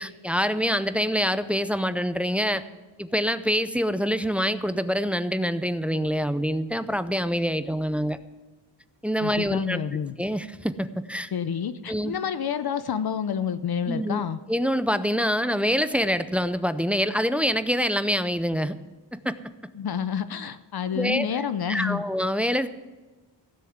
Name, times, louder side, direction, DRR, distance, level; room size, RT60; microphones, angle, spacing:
voice 1, 0.0-2.6 3.0-8.2 9.0-9.8 10.2-11.3 11.9-12.2 13.9-18.8 19.1-19.4 20.9-22.7, equal, 5° right, 12 dB, 0.4 m, -26 dB
voice 2, 9.2-10.2 11.3-14.4 19.7-22.0, left 7 dB, 60° left, 13 dB, 0.6 m, -29 dB
16.0 x 6.8 x 7.9 m, 1.2 s
wide cardioid pair, 150°, 43 cm